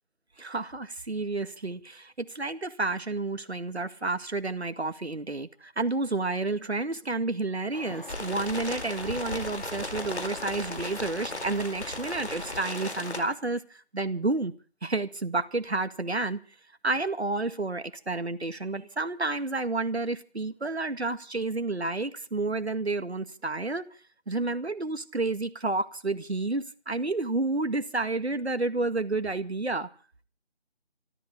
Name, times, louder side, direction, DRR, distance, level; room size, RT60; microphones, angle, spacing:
voice 1, 0.4-14.5 14.8-16.4 16.8-23.9 24.3-29.9, right 3 dB, 80° right, 2.1 m, -30 dB
sound 1, 7.7-13.4, left 3 dB, 55° left, 3.1 m, -44 dB
sound 2, 8.1-13.2, left 1 dB, 85° left, 4.5 m, -36 dB
27.0 x 14.0 x 3.7 m
figure-of-eight pair, 170°, 32 cm